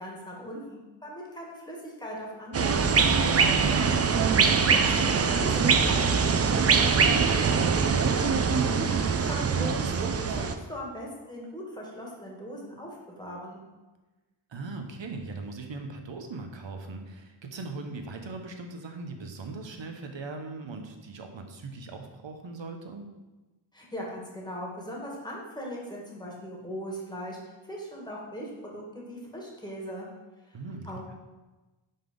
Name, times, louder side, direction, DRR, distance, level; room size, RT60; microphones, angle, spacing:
voice 1, 0.0-3.6 4.3-7.8 8.9-13.6 23.7-30.1 30.8-31.1, equal, 10° left, -3 dB, 1.5 m, -39 dB
sound 1, 2.5-10.5, right 5 dB, 35° right, 0.4 m, -23 dB
voice 2, 8.5-8.9 14.5-23.0 30.5-31.1, right 3 dB, 65° right, 5 dB, 0.9 m, -39 dB
5.5 x 3.9 x 5.1 m, 1.2 s
wide cardioid pair, 95°, 49 cm